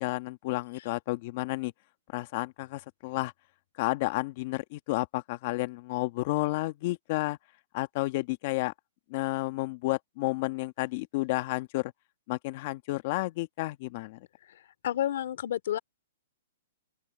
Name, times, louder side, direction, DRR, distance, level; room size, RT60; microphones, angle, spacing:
voice 1, 0.0-1.7 2.1-3.3 3.8-7.4 7.7-8.7 9.1-11.9 12.3-14.3, left 20 dB, 45° left, 1.3 m, -31 dB
voice 2, 14.8-15.8, left 11 dB, 60° left, 2.8 m, -29 dB
open air
hypercardioid pair, 150°, 0 cm